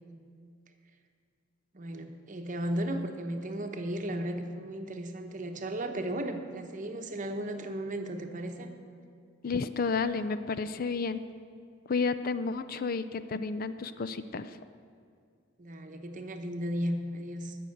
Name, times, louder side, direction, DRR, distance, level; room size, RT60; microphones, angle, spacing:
voice 1, 1.7-8.7 15.6-17.6, right 1 dB, 40° right, 6 dB, 0.9 m, -35 dB
voice 2, 9.4-11.2 11.9-14.6, left 4 dB, 45° left, 12 dB, 0.4 m, -31 dB
14.5 x 6.3 x 8.5 m, 2.2 s
head